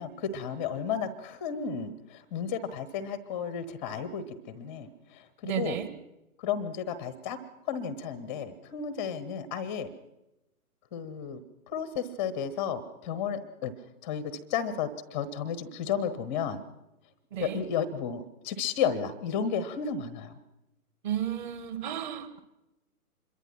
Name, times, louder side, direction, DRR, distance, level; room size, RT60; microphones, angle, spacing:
voice 1, 0.0-5.8 6.4-7.4 7.7-9.9 10.9-11.4 11.7-13.7 14.0-16.6 17.4-20.4, left 7 dB, 10° left, 16 dB, 0.7 m, -33 dB
voice 2, 5.4-5.9 17.3-17.6 21.0-22.4, right 10 dB, 30° right, 10 dB, 2.4 m, -32 dB
26.0 x 22.5 x 5.8 m, 0.93 s
figure-of-eight pair, 135°, 45 cm